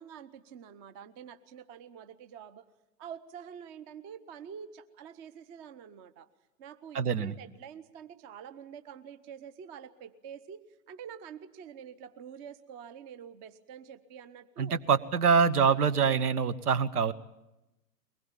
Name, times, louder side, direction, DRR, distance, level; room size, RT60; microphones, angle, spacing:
voice 1, 0.0-2.6 3.0-6.3 6.6-14.8, right 8 dB, 25° right, 12 dB, 0.9 m, -47 dB
voice 2, 6.9-7.4 14.6-17.1, right 6 dB, 65° right, 15 dB, 1.3 m, -25 dB
22.5 x 20.0 x 9.0 m, 0.97 s
figure-of-eight pair, 120°, 48 cm